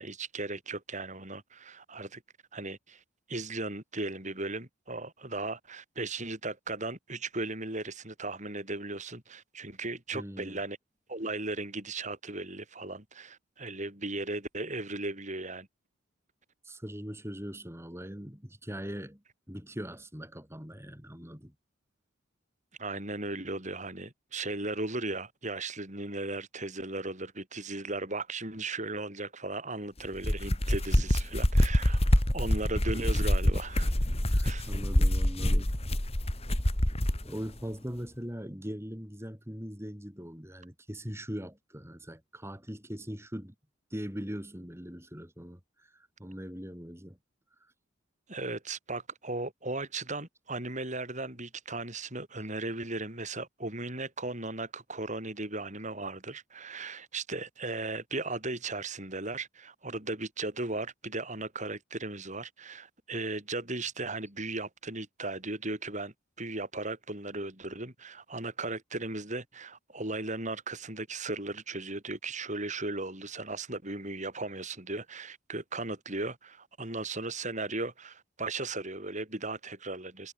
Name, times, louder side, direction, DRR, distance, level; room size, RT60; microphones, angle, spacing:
voice 1, 0.0-2.2 2.5-3.0 3.3-10.8 11.1-15.7 22.8-33.9 34.4-34.7 48.3-80.3, right 2 dB, 35° right, 7.0 m, -37 dB
voice 2, 10.1-10.6 16.6-19.2 19.5-21.5 30.8-31.1 32.1-32.2 34.3-35.7 37.2-43.5 43.9-47.2 47.6-47.7, equal, 15° right, 5.8 m, -41 dB
sound 1, 30.1-37.2, left 1 dB, 30° left, 2.4 m, -26 dB
head